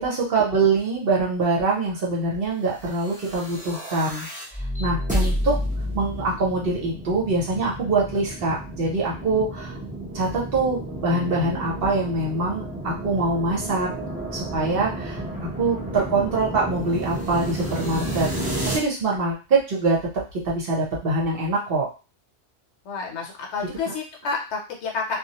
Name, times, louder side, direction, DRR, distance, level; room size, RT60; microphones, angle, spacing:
voice 1, 0.0-4.3 4.8-5.6 5.9-9.8 10.1-13.9 14.3-15.2 15.6-20.0 20.4-21.9 23.9-24.0, right 3 dB, 55° right, -3 dB, 0.9 m, -24 dB
sound 1, 3.0-18.8, equal, 10° right, 0.4 m, -31 dB
voice 2, 22.8-25.2, left 4 dB, 70° left, 1 dB, 0.9 m, -29 dB
2.3 x 2.0 x 2.8 m, 0.31 s
omnidirectional pair, 1.2 m